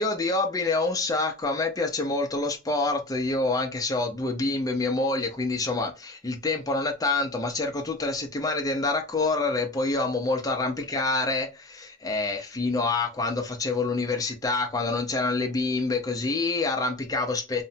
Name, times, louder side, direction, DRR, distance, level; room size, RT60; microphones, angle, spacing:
voice 1, 0.0-17.6, left 3 dB, 20° left, 0.5 m, -27 dB
2.9 x 2.1 x 2.7 m
head